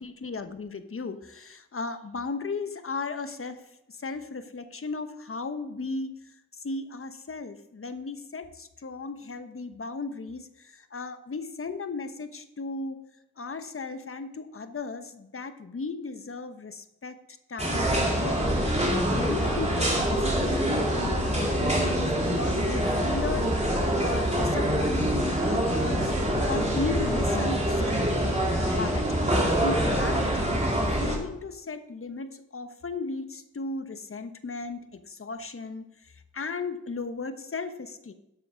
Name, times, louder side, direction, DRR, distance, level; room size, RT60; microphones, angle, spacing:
voice 1, 0.0-3.6 3.9-13.0 13.4-17.2 17.5-26.1 26.5-28.4 28.6-29.1 29.3-30.6 31.0-38.1, left 3 dB, 40° left, 9 dB, 1.1 m, -36 dB
sound 1, 17.6-31.2, equal, 20° right, 3.1 m, -25 dB
12.0 x 6.8 x 5.1 m, 0.86 s
cardioid pair, 70°, 32 cm